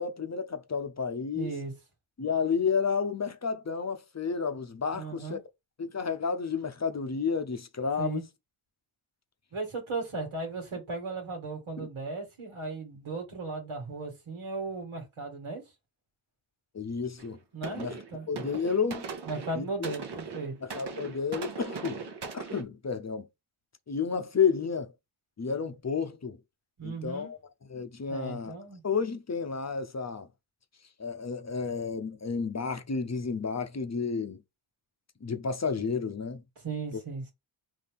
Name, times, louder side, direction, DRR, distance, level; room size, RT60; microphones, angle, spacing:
voice 1, 0.0-1.5 2.2-5.4 5.8-8.2 11.8-11.9 16.7-17.4 17.7-18.0 18.3-19.1 19.5-19.9 20.6-22.1 22.3-23.3 23.9-24.9 25.4-26.4 26.8-27.4 27.7-28.5 28.8-30.3 31.0-34.4 35.2-36.4, left 5 dB, 35° left, 0.7 m, -31 dB
voice 2, 1.3-1.7 4.9-5.4 8.0-8.2 9.5-15.6 17.5-18.3 19.3-20.5 26.8-27.3 28.1-28.8 36.6-37.3, right 3 dB, 80° right, 1.8 m, -36 dB
sound 1, 17.2-17.4 17.6-22.6, right 5 dB, 55° right, 1.0 m, -39 dB
4.2 x 2.8 x 3.5 m
cardioid pair, 60°, 49 cm